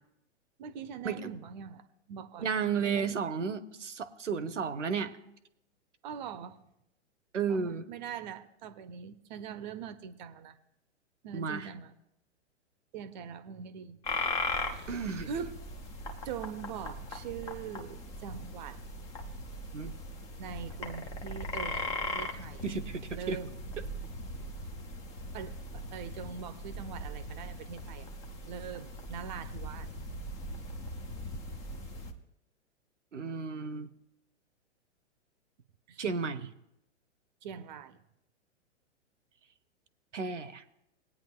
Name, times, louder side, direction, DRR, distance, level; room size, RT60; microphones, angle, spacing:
voice 1, 0.6-2.5 2.8-3.2 6.0-6.6 7.5-10.6 11.2-11.9 12.9-14.0 14.6-14.9 15.3-15.6 16.2-18.8 20.4-22.6 23.1-23.6 25.3-28.1 28.5-29.9 35.9-36.1 37.4-38.0, right 7 dB, 40° right, 0.6 m, -42 dB
voice 2, 2.4-5.1 7.3-7.8 11.3-11.7 14.9-15.3 19.7-20.0 22.6-23.4 33.1-33.9 36.0-36.5 40.1-40.6, right 5 dB, 80° right, 0.8 m, -33 dB
sound 1, 14.0-32.1, left 1 dB, 10° left, 0.3 m, -39 dB
20.5 x 8.9 x 2.2 m
figure-of-eight pair, 110°, 36 cm